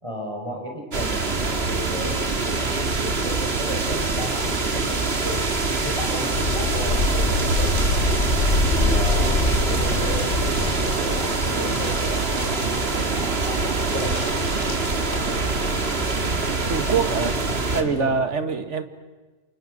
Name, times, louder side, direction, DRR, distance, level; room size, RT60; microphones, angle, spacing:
voice 1, 0.0-5.4 5.8-8.1 8.7-14.3 17.8-18.1, equal, 25° right, 1 dB, 4.9 m, -34 dB
sound 1, 0.9-17.8, right 3 dB, 60° right, 2.1 m, -24 dB
sound 2, 6.3-11.3, left 2 dB, 70° left, 1.8 m, -24 dB
sound 3, 7.4-15.2, left 1 dB, 90° left, 4.3 m, -39 dB
voice 2, 16.7-17.4 17.7-18.8, right 5 dB, 90° right, 9 dB, 2.0 m, -24 dB
30.0 x 28.0 x 6.4 m, 1.3 s
omnidirectional pair, 1.2 m